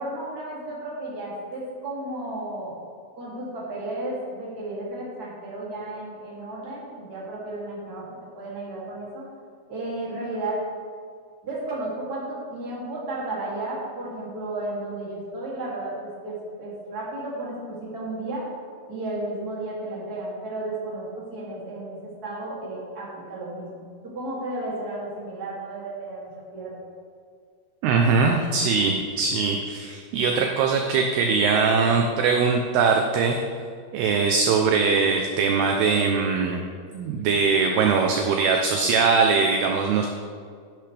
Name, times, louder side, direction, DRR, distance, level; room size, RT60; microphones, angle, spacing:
voice 1, 0.0-2.8 3.1-8.0 8.4-9.3 9.7-10.6 11.4-18.5 18.9-26.8, right 2 dB, 25° right, -6 dB, 2.3 m, -33 dB
voice 2, 27.8-33.4 33.9-36.6 36.9-40.1, right 5 dB, 80° right, 2 dB, 2.3 m, -21 dB
12.5 x 10.5 x 3.4 m, 2.1 s
omnidirectional pair, 5.3 m